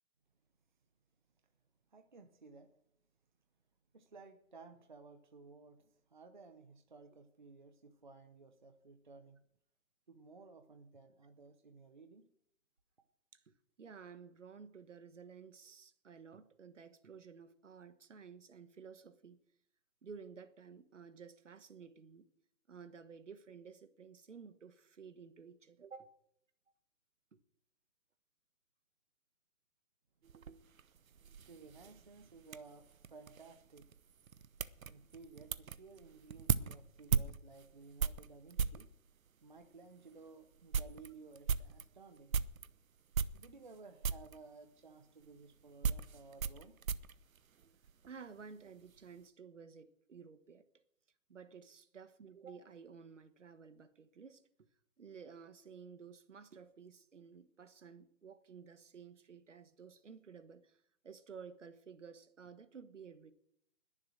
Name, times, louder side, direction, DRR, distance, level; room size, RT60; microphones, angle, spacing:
voice 1, 1.9-2.7 3.9-9.4 10.1-12.2 30.8-31.2 31.4-33.9 34.8-38.9 39.4-42.4 43.3-46.7, right 4 dB, 35° right, 0.8 m, -56 dB
voice 2, 13.3-19.4 20.0-22.3 22.7-26.2 27.3-27.4 48.1-50.8 51.3-54.4 55.0-63.3, right 6 dB, 60° right, 1.3 m, -54 dB
sound 1, 30.2-38.9 39.6-39.7 40.2-40.3 40.5-42.7 43.1-43.8 44.0-44.4 45.2-48.1 48.4-49.0, right 6 dB, 75° right, 0.8 m, -38 dB
20.5 x 7.3 x 6.3 m
hypercardioid pair, 170°, 42 cm